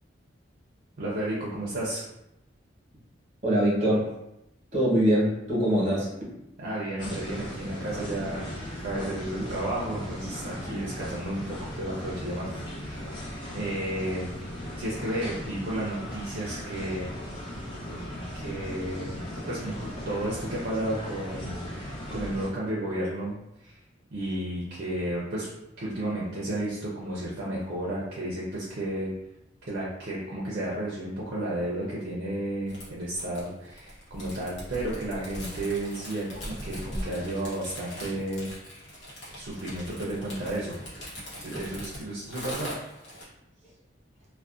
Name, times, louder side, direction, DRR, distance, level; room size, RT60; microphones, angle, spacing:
voice 1, 1.0-2.0 6.6-8.4 8.8-12.5 12.8-13.2 13.5-14.3 14.8-17.1 18.4-23.3 23.6-23.8 24.1-25.5 25.8-29.1 29.6-38.5 39.4-40.8 41.4-42.8, right 1 dB, 60° right, -6 dB, 0.5 m, -32 dB
voice 2, 3.4-4.1 4.7-6.1 43.6-43.7, equal, 40° right, -6 dB, 1.0 m, -23 dB
sound 1, 7.0-22.5, equal, 25° left, 0.6 m, -37 dB
sound 2, 32.7-43.3, equal, 70° left, 0.9 m, -41 dB
2.4 x 2.1 x 2.4 m, 0.86 s
head